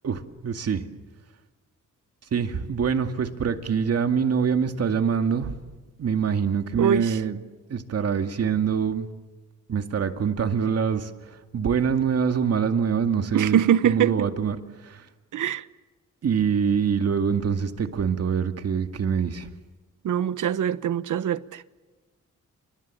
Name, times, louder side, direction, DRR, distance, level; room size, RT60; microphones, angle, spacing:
voice 1, 0.0-0.8 2.3-5.5 6.0-7.4 7.7-9.1 9.7-11.1 11.5-14.6 14.8-15.0 16.2-19.5, right 6 dB, 55° right, 2.2 m, -24 dB
voice 2, 6.8-7.2 13.3-14.3 15.3-15.6 20.0-21.6, right 9 dB, 80° right, 1.0 m, -23 dB
30.0 x 26.0 x 7.6 m
wide cardioid pair, 145°, 31 cm